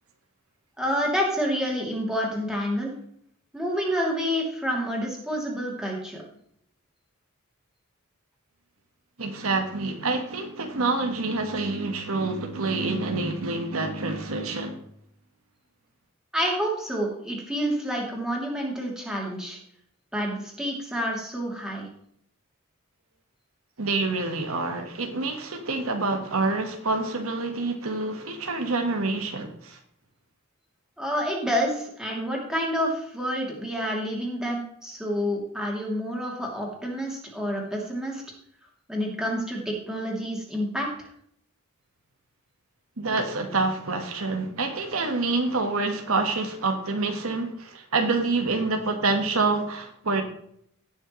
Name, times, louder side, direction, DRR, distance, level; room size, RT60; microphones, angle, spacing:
voice 1, 0.8-2.9 3.5-6.2 16.3-19.6 20.1-21.9 31.0-38.2 38.9-41.1, equal, 5° right, -2 dB, 2.8 m, -28 dB
voice 2, 9.2-14.8 23.8-29.8 43.0-50.2, right 3 dB, 85° right, 4 dB, 1.5 m, -27 dB
17.0 x 6.6 x 3.2 m, 0.67 s
head